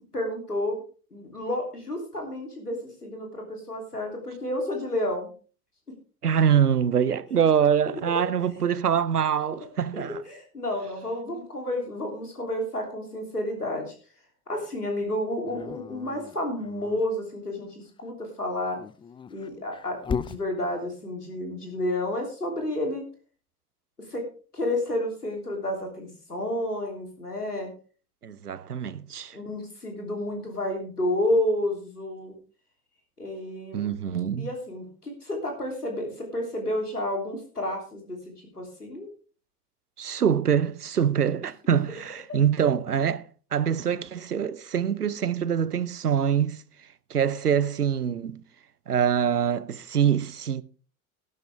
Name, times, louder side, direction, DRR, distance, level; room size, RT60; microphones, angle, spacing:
voice 1, 0.1-0.8 1.1-5.3 9.9-13.9 14.5-18.8 19.3-23.1 24.1-24.2 24.5-27.7 29.3-32.3 33.2-33.9 34.4-38.2 38.5-39.1, left 1 dB, 90° left, 3.3 m, -30 dB
voice 2, 6.2-10.2 28.2-29.4 33.7-34.5 40.0-43.3 43.5-46.6 47.1-48.4 48.9-50.6, right 8 dB, 90° right, 0.6 m, -24 dB
Dog, 15.5-17.0 18.6-20.4, left 6 dB, 10° left, 0.4 m, -36 dB
13.0 x 12.0 x 3.5 m
figure-of-eight pair, 70°, 45 cm